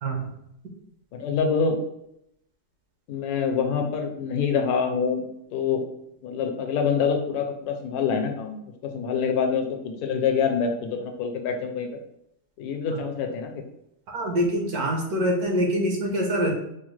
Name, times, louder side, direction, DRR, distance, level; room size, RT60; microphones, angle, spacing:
voice 1, 1.1-1.8 3.1-5.2 5.5-5.8 6.2-8.6 8.9-11.9 12.6-13.5, left 6 dB, 75° left, 4 dB, 1.1 m, -25 dB
voice 2, 14.1-16.5, equal, 75° right, 0 dB, 1.4 m, -25 dB
5.2 x 2.1 x 3.1 m, 0.79 s
omnidirectional pair, 1.7 m